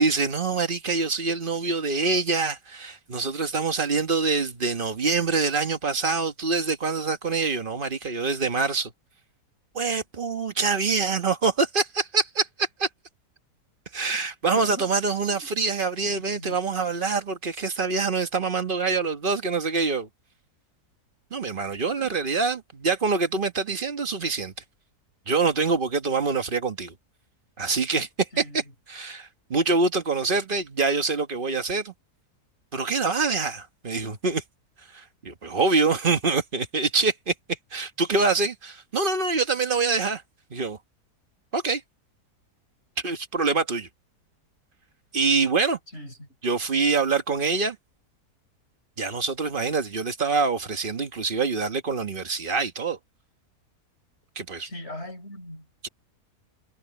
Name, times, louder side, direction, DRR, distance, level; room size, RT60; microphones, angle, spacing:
voice 1, 0.0-8.9 9.7-12.9 13.9-20.1 21.3-24.5 25.3-26.9 27.6-28.4 28.9-31.9 32.7-34.4 34.9-40.2 40.5-40.8 41.5-41.8 43.0-43.9 45.1-45.8 46.4-47.8 49.0-53.0 54.3-54.7 55.8-55.9, right 4 dB, 35° right, 1.3 m, -25 dB
voice 2, 14.6-14.9 15.3-15.5 16.0-16.6 22.0-22.1 28.3-28.6 45.9-46.3 54.6-55.7, left 1 dB, 40° left, 5.4 m, -40 dB
omnidirectional pair, 1.7 m